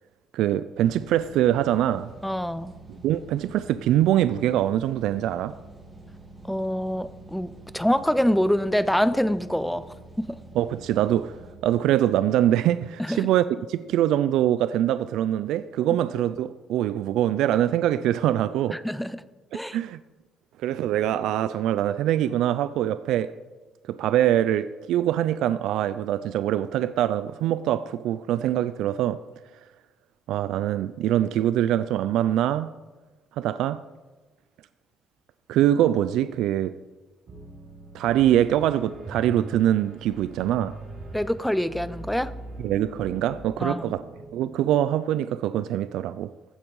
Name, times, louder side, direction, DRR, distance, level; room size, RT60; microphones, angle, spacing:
voice 1, 0.3-2.1 3.0-5.6 10.6-11.4 11.6-18.8 19.5-20.0 20.6-23.3 23.9-29.2 30.3-32.7 33.4-33.8 35.5-36.7 37.9-40.7 42.6-44.0 44.3-46.3, right 12 dB, 85° right, 0.4 m, -23 dB
sound 1, 0.8-11.5, right 2 dB, 15° right, 1.8 m, -47 dB
voice 2, 2.2-2.7 6.4-10.4 13.0-13.3 18.7-19.2 19.5-19.8 41.1-42.3 43.6-43.9, equal, ahead, 0.4 m, -25 dB
Piano, 37.3-44.3, right 2 dB, 50° right, 4.5 m, -41 dB
15.0 x 8.8 x 4.7 m
cardioid pair, 175°, 0 cm